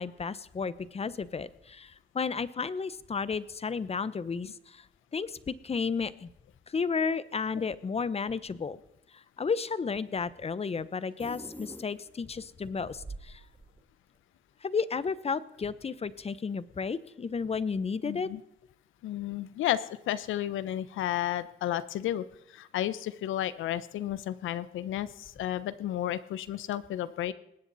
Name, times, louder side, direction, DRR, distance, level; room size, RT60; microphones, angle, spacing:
voice 1, 0.0-4.8 5.1-6.3 6.7-8.8 9.1-13.4 14.6-18.3, left 5 dB, 30° left, 17 dB, 0.9 m, -33 dB
sound 1, 7.9-8.0 9.6-9.7 10.7-10.8 11.1-11.7 12.2-14.2, right 3 dB, 25° right, 1.1 m, -48 dB
sound 2, 11.2-12.4, left 1 dB, 10° left, 1.7 m, -45 dB
voice 2, 18.0-18.4 19.0-27.3, left 12 dB, 85° left, 16 dB, 1.0 m, -32 dB
19.5 x 16.5 x 4.2 m, 0.81 s
cardioid pair, 90°, 20 cm